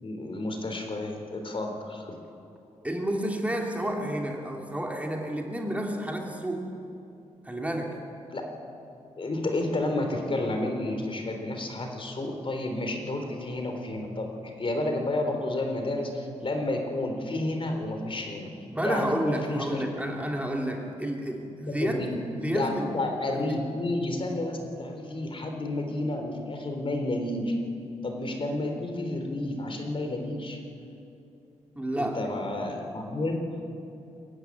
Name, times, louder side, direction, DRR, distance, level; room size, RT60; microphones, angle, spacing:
voice 1, 0.0-2.1 8.3-8.5 9.2-14.3 14.6-18.5 18.8-19.8 21.7-22.2 22.5-27.5 28.0-30.6 32.0-33.4, left 2 dB, 45° left, 4 dB, 3.6 m, -31 dB
voice 2, 2.8-6.7 7.4-8.0 18.7-22.0 22.3-23.0 23.3-23.6 31.8-32.3, right 1 dB, 10° right, 1 dB, 2.7 m, -30 dB
23.0 x 13.5 x 9.6 m, 2.7 s
cardioid pair, 70°, 13 cm